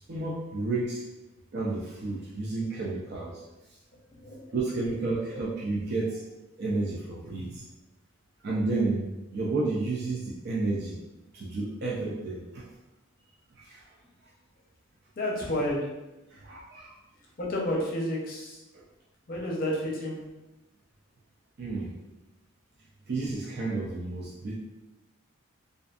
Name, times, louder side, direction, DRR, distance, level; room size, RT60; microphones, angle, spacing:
voice 1, 0.1-1.0 1.5-3.4 4.5-6.2 6.6-7.6 8.4-11.0 11.3-12.6 13.6-13.9 16.3-16.9 21.6-21.9 23.1-24.5, right 3 dB, 50° right, -5 dB, 0.4 m, -31 dB
voice 2, 4.1-4.6 15.2-15.9 17.4-18.6 19.3-20.2, left 1 dB, 45° left, -2 dB, 0.6 m, -30 dB
2.5 x 2.4 x 2.3 m, 0.99 s
head